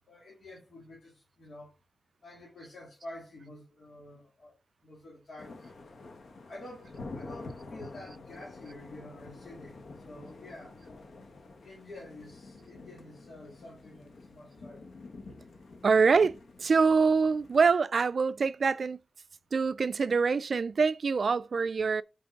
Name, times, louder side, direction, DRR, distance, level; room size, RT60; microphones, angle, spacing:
voice 1, 0.1-1.7 2.2-5.6 5.8-5.9 6.5-10.8 11.6-15.1, left 1 dB, 65° left, 2.5 m, -49 dB
sound 1, 5.4-17.7, left 3 dB, 90° left, 1.2 m, -48 dB
voice 2, 15.8-19.0 19.5-22.0, right 5 dB, 60° right, 0.4 m, -25 dB
6.0 x 4.6 x 5.2 m
wide cardioid pair, 125°, 0 cm